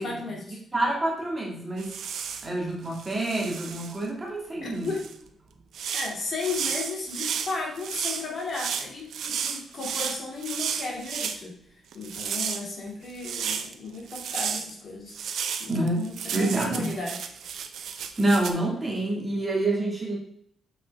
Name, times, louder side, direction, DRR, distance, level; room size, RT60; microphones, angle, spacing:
voice 1, 0.0-0.6 4.6-5.0 5.9-11.5 11.9-15.1 15.6-17.3 19.3-19.5, left 3 dB, 55° left, -2 dB, 2.6 m, -34 dB
voice 2, 0.7-1.9 2.4-4.9 15.7-16.0 16.3-16.9 18.2-20.2, right 2 dB, 20° right, -2 dB, 2.1 m, -27 dB
sound 1, 1.8-2.5 2.9-4.0 4.8-5.1 5.7-11.4 11.9-13.7 14.1-14.7 15.1-18.5, right 7 dB, 75° right, 0.6 m, -33 dB
6.6 x 5.9 x 3.6 m, 0.68 s
cardioid pair, 105°, 0 cm